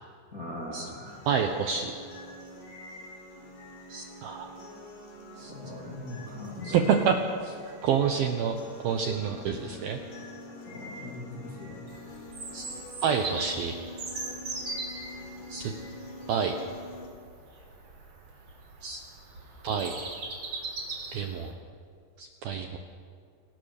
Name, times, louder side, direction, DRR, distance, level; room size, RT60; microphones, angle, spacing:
voice 1, 0.3-1.3 5.5-6.9 10.7-11.9, left 1 dB, 25° left, -3 dB, 1.9 m, -40 dB
sound 1, 1.1-17.1, left 1 dB, 65° left, 6.0 m, -45 dB
voice 2, 1.3-1.9 3.9-4.5 5.4-5.5 6.6-7.2 7.4-7.6 7.8-8.6 8.8-10.0 12.5-12.6 13.0-13.7 15.5-15.7 16.3-16.6 18.8-19.0 19.6-20.0 21.1-21.5 22.2-22.8, right 7 dB, 70° right, 4 dB, 2.4 m, -28 dB
Bird vocalization bird call bird song, 11.9-21.5, right 3 dB, 35° right, 3.8 m, -40 dB
27.0 x 18.5 x 6.8 m, 2.2 s
omnidirectional pair, 5.6 m